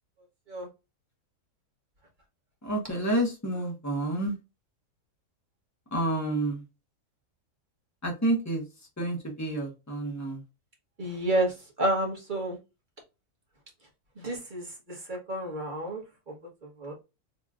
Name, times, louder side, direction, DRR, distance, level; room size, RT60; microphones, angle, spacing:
voice 1, 2.6-4.3 5.9-6.6 8.0-8.6 9.0-10.4, right 1 dB, 10° left, 0 dB, 1.2 m, -29 dB
voice 2, 11.0-11.5 11.8-12.6 14.2-14.6 15.1-16.0 16.8-16.9, right 1 dB, 30° right, 0 dB, 1.4 m, -29 dB
4.1 x 3.2 x 2.4 m, 0.27 s
omnidirectional pair, 1.7 m